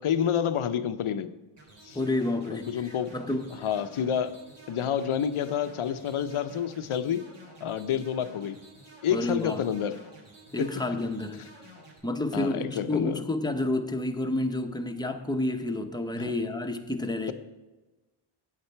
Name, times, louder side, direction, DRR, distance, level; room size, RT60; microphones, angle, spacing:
voice 1, 0.0-1.3 1.8-2.0 2.5-3.1 3.6-4.4 4.7-7.2 7.6-8.6 9.0-10.0 10.6-10.7 12.3-13.2 16.2-16.3, left 8 dB, 75° left, 12 dB, 0.7 m, -28 dB
sound 1, 1.6-12.0, right 1 dB, 75° right, 3.9 m, -51 dB
voice 2, 1.9-3.7 9.1-9.7 10.5-11.4 12.0-17.3, left 2 dB, 10° left, 5 dB, 0.8 m, -30 dB
8.9 x 8.7 x 4.5 m, 1.1 s
wide cardioid pair, 95°, 50 cm